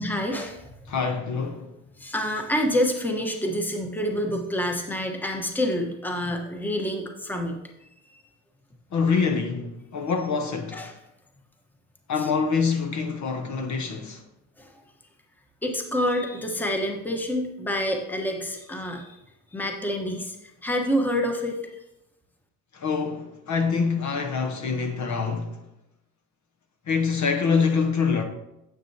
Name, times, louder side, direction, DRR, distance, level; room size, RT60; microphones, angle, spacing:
voice 1, 0.0-0.7 2.0-7.6 8.1-8.2 10.7-10.9 12.2-12.3 14.6-14.7 15.6-19.2 19.5-20.4 20.6-21.6, equal, 5° left, 1.1 m, -27 dB
voice 2, 0.9-1.7 8.9-10.8 12.1-14.2 22.7-25.5 26.9-28.2, left 5 dB, 45° left, 1.0 m, -25 dB
9.8 x 7.0 x 2.8 m
supercardioid pair, 95°, 40 cm